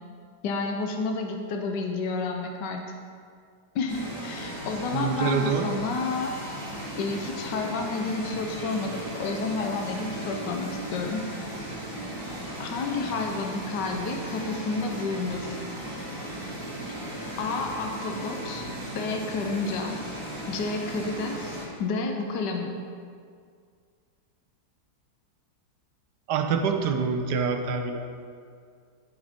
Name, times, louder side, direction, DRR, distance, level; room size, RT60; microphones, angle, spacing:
voice 1, 0.4-2.9 3.7-6.3 7.0-11.3 12.6-15.6 17.4-18.6 18.9-20.0 20.5-22.8, left 3 dB, 75° left, 3 dB, 1.4 m, -30 dB
sound 1, 3.9-21.7, right 1 dB, 30° right, 2.8 m, -36 dB
voice 2, 4.9-5.7 26.3-28.0, right 5 dB, 75° right, 5 dB, 1.4 m, -26 dB
11.0 x 8.8 x 3.6 m, 2.2 s
omnidirectional pair, 1.9 m